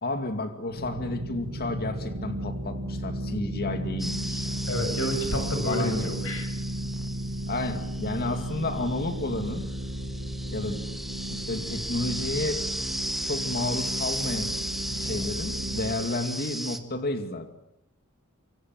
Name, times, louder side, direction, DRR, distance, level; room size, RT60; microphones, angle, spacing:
voice 1, 0.0-4.5 5.7-6.1 7.5-9.7 10.5-10.8 11.3-12.7 13.2-14.6 15.0-17.5, left 2 dB, 45° left, 7 dB, 2.4 m, -31 dB
sound 1, 0.7-15.9, right 1 dB, 85° right, 5.3 m, -34 dB
sound 2, 4.0-16.8, equal, ahead, 1.9 m, -35 dB
voice 2, 4.7-6.5, equal, 65° left, 5 dB, 8.0 m, -29 dB
26.5 x 25.5 x 7.7 m, 0.78 s
head